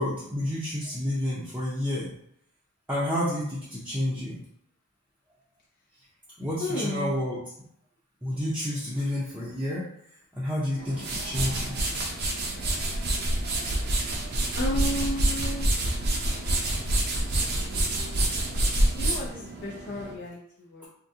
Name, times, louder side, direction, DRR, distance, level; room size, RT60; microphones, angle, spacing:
voice 1, 0.0-2.1 2.9-4.4 6.4-7.4 8.2-9.9 10.3-11.8, left 1 dB, 10° right, -9 dB, 0.6 m, -29 dB
voice 2, 6.6-7.2 14.5-15.7 19.0-20.9, left 1 dB, 50° left, -4 dB, 0.5 m, -33 dB
sound 1, 10.8-20.1, right 1 dB, 50° right, 0.6 m, -27 dB
3.6 x 2.3 x 2.7 m, 0.72 s
head